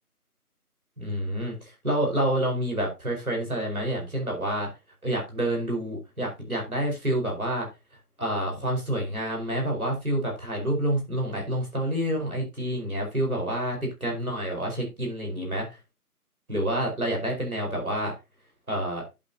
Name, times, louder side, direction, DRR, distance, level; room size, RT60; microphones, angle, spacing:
voice 1, 1.0-4.7 5.0-7.7 8.2-14.7 15.0-15.7 16.5-18.1 18.7-19.0, right 1 dB, 65° right, 0 dB, 4.9 m, -28 dB
10.5 x 6.8 x 2.8 m, 0.25 s
figure-of-eight pair, 175°, 46 cm